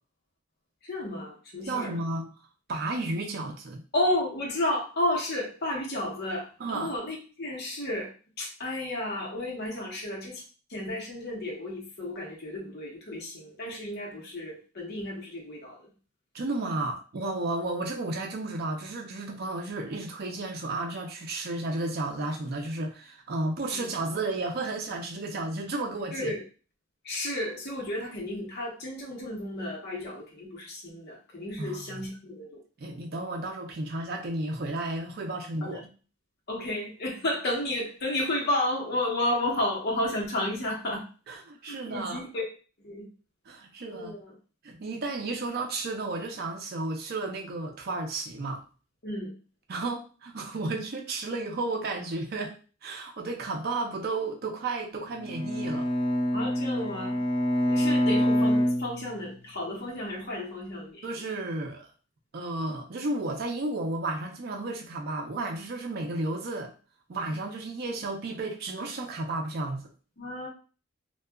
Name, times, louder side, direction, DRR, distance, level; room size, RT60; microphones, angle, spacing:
voice 1, 0.8-2.0 3.9-8.1 8.4-10.4 10.7-15.9 23.7-23.8 26.1-26.4 27.0-32.6 35.6-35.8 36.5-41.0 41.7-42.4 42.8-43.1 43.9-44.3 49.0-49.3 56.3-57.2 57.7-61.3 70.2-70.5, left 1 dB, 55° left, -1 dB, 0.9 m, -32 dB
voice 2, 1.7-2.3 2.7-3.8 6.6-6.9 16.3-26.3 31.6-32.1 32.8-35.9 41.3-42.2 43.5-44.1 44.6-48.6 49.7-55.9 61.0-61.9 62.3-66.7 67.1-69.9, right 2 dB, 50° right, 2 dB, 0.5 m, -33 dB
Bowed string instrument, 55.2-59.6, equal, 30° left, 0.5 m, -26 dB
2.7 x 2.2 x 2.3 m, 0.36 s
head